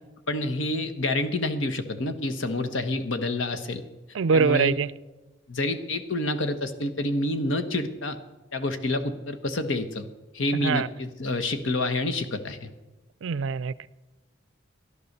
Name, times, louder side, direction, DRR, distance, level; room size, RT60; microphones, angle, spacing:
voice 1, 0.3-3.8 4.3-4.8 5.5-8.2 8.5-10.1 10.3-12.7, left 2 dB, 70° left, 1.2 m, -28 dB
voice 2, 4.1-4.9 10.6-10.9 13.2-13.9, right 5 dB, 70° right, 0.4 m, -23 dB
14.0 x 11.0 x 6.6 m
head